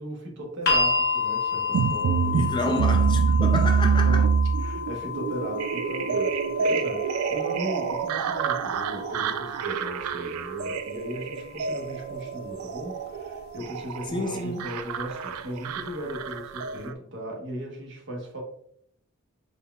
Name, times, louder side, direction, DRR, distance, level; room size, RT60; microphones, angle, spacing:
voice 1, 0.0-2.7 4.0-4.3 4.6-18.4, equal, 60° right, 1.0 m, -37 dB
sound 1, 0.7-12.7 13.8-13.9, left 4 dB, 50° left, 0.8 m, -32 dB
sound 2, 1.7-16.9, right 6 dB, 80° right, 0.3 m, -26 dB
voice 2, 2.3-4.2 14.1-14.8, left 2 dB, 20° left, 0.4 m, -30 dB
4.3 x 3.3 x 2.3 m
head